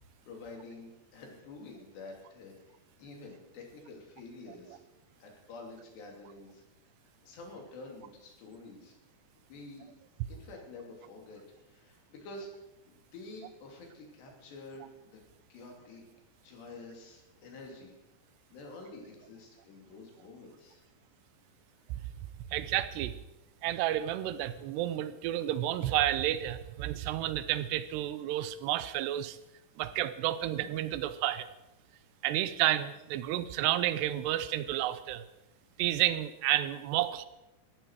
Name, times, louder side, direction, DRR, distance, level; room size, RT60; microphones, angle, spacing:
voice 1, 0.3-4.8 5.2-6.6 7.2-8.9 9.5-9.9 10.3-12.5 12.9-15.2 15.5-16.0 16.4-18.0 18.5-20.9, left 2 dB, 75° left, 1 dB, 5.1 m, -48 dB
voice 2, 22.5-23.1 23.6-29.4 29.8-31.5 32.2-35.2 35.8-37.3, right 13 dB, 80° right, 14 dB, 2.8 m, -31 dB
17.5 x 15.0 x 4.8 m, 0.95 s
omnidirectional pair, 5.0 m